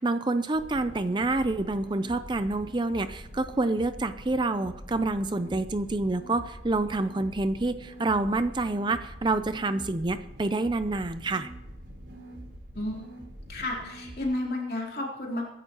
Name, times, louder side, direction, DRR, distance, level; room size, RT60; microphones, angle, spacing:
voice 1, 0.0-11.5, right 2 dB, 25° right, 11 dB, 0.5 m, -27 dB
sound 1, 0.5-14.2, equal, 65° right, 4.2 m, -45 dB
voice 2, 12.7-13.1 13.5-15.5, left 1 dB, 55° left, -2 dB, 3.3 m, -32 dB
23.0 x 11.0 x 3.0 m, 1.0 s
head